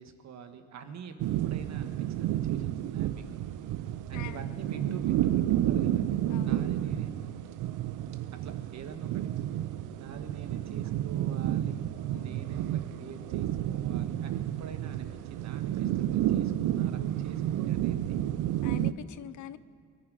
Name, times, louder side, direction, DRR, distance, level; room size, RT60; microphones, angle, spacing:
voice 1, 0.0-3.4 4.1-7.1 8.4-9.2 10.0-11.8 12.2-18.2, right 6 dB, 65° right, 7 dB, 1.4 m, -46 dB
sound 1, 1.2-18.9, right 12 dB, 85° right, 0.6 m, -31 dB
voice 2, 4.1-4.5 6.3-6.6 12.1-12.5 18.6-19.6, left 12 dB, 75° left, 15 dB, 0.6 m, -44 dB
22.5 x 10.0 x 4.9 m, 2.3 s
cardioid pair, 90°, 30 cm